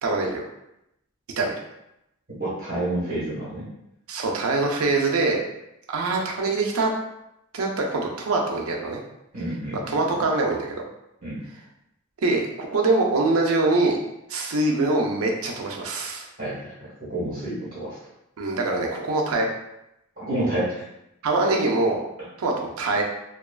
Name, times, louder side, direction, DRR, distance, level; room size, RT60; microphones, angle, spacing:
voice 1, 0.0-0.4 1.4-1.5 4.1-5.4 5.9-6.9 7.5-9.0 9.9-10.8 12.2-14.0 14.3-16.3 18.4-19.5 21.2-22.0 22.4-23.0, right 3 dB, 80° right, 1 dB, 0.5 m, -23 dB
voice 2, 2.4-3.7 9.3-10.0 11.2-11.4 16.4-18.0 20.2-20.8, right 1 dB, 45° right, -10 dB, 1.2 m, -29 dB
2.9 x 2.3 x 2.3 m, 0.85 s
head